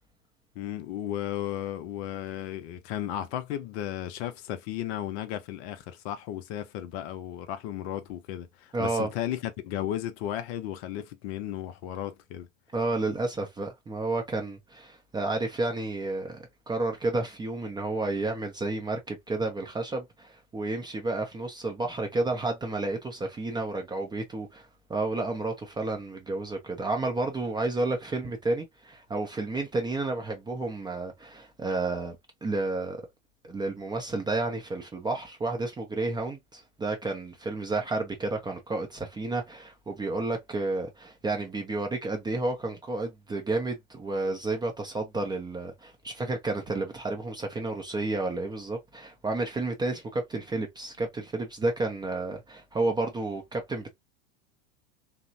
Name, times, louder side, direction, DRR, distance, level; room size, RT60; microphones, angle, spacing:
voice 1, 0.6-12.5, left 12 dB, 50° left, 0.6 m, -34 dB
voice 2, 8.7-9.1 12.7-33.0 33.4-53.9, right 2 dB, 10° right, 0.4 m, -31 dB
2.9 x 2.0 x 2.5 m
hypercardioid pair, 95°, 41 cm